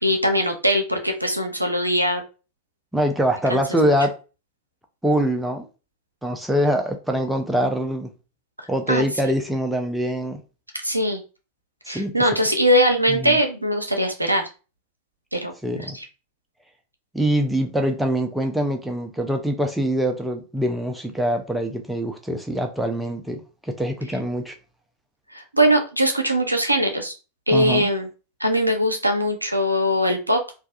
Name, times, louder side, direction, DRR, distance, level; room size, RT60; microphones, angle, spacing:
voice 1, 0.0-2.2 3.5-3.9 8.9-9.0 10.8-11.2 11.9-14.4 15.3-16.0 25.3-27.1 27.5-28.1 28.4-30.4, equal, 85° right, 0.5 m, -21 dB
voice 2, 2.9-4.2 5.0-5.7 6.2-8.1 8.7-10.4 11.9-12.4 13.1-13.4 15.6-16.0 17.1-24.5 27.5-27.9, equal, 5° right, 0.4 m, -24 dB
2.6 x 2.2 x 2.4 m
figure-of-eight pair, 90°, 0 cm